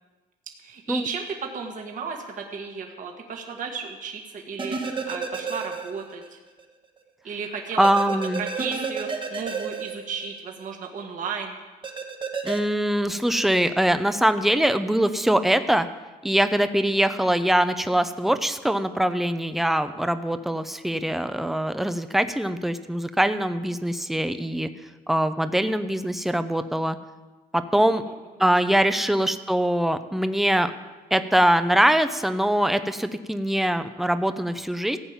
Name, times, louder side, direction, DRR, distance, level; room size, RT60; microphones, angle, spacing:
voice 1, 0.6-6.4 7.2-11.6 27.7-28.0, right 5 dB, 50° right, 2 dB, 1.7 m, -34 dB
sound 1, 4.6-6.3 6.6-6.7 7.8-10.6 11.8-12.6, right 5 dB, 30° right, 1.4 m, -31 dB
voice 2, 7.8-8.4 12.4-15.9 16.2-24.7 25.1-27.0 27.5-28.0 28.4-30.7 31.1-35.0, right 1 dB, ahead, 10 dB, 0.7 m, -23 dB
15.5 x 5.5 x 8.9 m, 1.2 s
cardioid pair, 110°, 17 cm